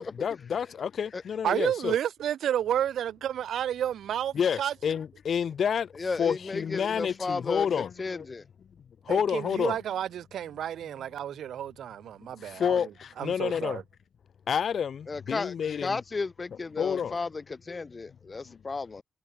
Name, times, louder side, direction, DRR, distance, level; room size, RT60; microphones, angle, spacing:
voice 1, 0.0-1.9 4.3-5.9 6.2-8.3 9.1-9.8 12.4-13.8 14.5-16.0 16.8-17.1, left 7 dB, 70° left, 0.6 m, -29 dB
voice 2, 1.4-4.7 9.1-12.9 13.2-13.8, right 10 dB, 90° right, 0.7 m, -31 dB
voice 3, 5.9-8.4 15.1-19.0, left 4 dB, 40° left, 1.5 m, -34 dB
cardioid pair, 75°, 0 cm